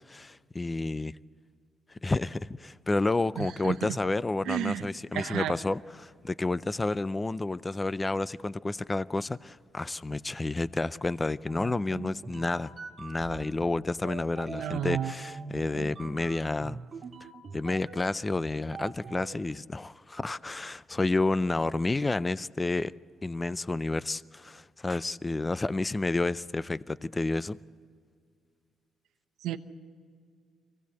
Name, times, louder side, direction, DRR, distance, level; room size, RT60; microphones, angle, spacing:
voice 1, 0.1-1.1 1.9-12.7 13.0-16.8 17.5-22.9 23.2-27.6, left 2 dB, 20° left, 0.5 m, -30 dB
voice 2, 3.4-4.0 4.4-4.9 5.1-5.5 14.5-15.1 29.4-29.6, right 11 dB, 85° right, 1.0 m, -32 dB
sound 1, 11.5-19.4, right 5 dB, 45° right, 1.9 m, -43 dB
24.0 x 17.5 x 8.2 m
cardioid pair, 90°, 0 cm